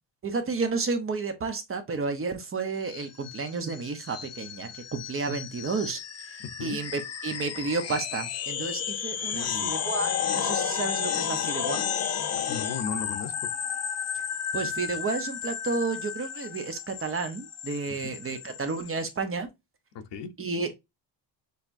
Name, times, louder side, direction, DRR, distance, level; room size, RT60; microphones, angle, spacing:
voice 1, 0.2-11.8 14.5-19.5 20.4-20.8, right 4 dB, 30° right, 0.8 m, -31 dB
sound 1, 2.8-19.0, left 8 dB, 35° left, 0.6 m, -33 dB
voice 2, 6.4-6.8 9.3-9.7 12.5-13.5 17.9-18.1 19.9-20.3, left 5 dB, 65° left, 0.9 m, -36 dB
6.6 x 2.9 x 2.6 m
cardioid pair, 155°, 45 cm